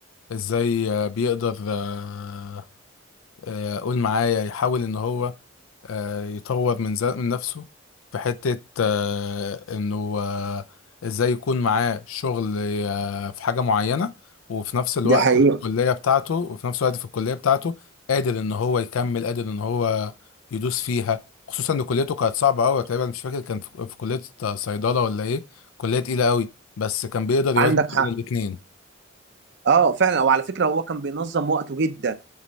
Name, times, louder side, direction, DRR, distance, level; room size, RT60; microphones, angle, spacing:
voice 1, 0.3-2.6 3.4-5.3 5.8-7.6 8.1-10.6 11.0-14.1 14.5-15.3 15.6-17.8 18.1-20.1 20.5-21.2 21.5-25.4 25.8-26.5 26.8-28.6, left 5 dB, 85° left, 0.4 m, -25 dB
voice 2, 15.0-15.6 27.6-28.1 29.6-32.1, right 5 dB, 60° right, 0.6 m, -20 dB
8.1 x 3.2 x 5.2 m
head